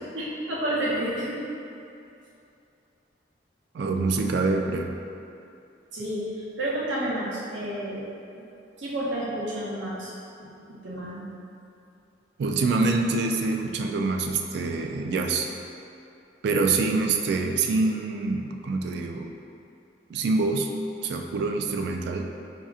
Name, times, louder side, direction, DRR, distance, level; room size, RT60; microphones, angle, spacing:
voice 1, 0.1-1.4 5.9-8.0 8.3-8.4 8.8-10.1 10.4-10.5 10.8-11.3, right 1 dB, 90° right, -6 dB, 0.8 m, -30 dB
voice 2, 3.7-5.0 12.4-15.5 16.4-19.3 20.1-20.7 21.0-22.3, right 3 dB, 65° right, 4 dB, 0.3 m, -25 dB
4.7 x 2.8 x 2.4 m, 2.6 s
head